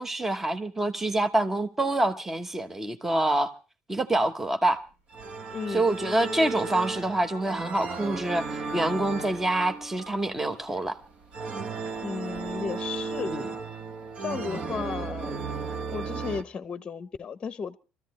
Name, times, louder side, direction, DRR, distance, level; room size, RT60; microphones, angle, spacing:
voice 1, 0.0-3.5 3.9-4.8 5.7-11.0 13.3-13.5, right 2 dB, 10° right, 1.0 m, -26 dB
sound 1, 5.1-16.4, right 4 dB, 40° right, 1.0 m, -35 dB
Telephone, 5.2-5.3 5.9-10.8 11.3-11.4 11.8-12.0 12.3-12.6 12.9-13.0, left 3 dB, 85° right, 7.7 m, -43 dB
voice 2, 5.5-5.9 12.0-13.5 14.2-15.3 15.9-17.8, left 6 dB, 30° left, 0.8 m, -34 dB
24.5 x 14.0 x 3.1 m
cardioid pair, 125°, 3 cm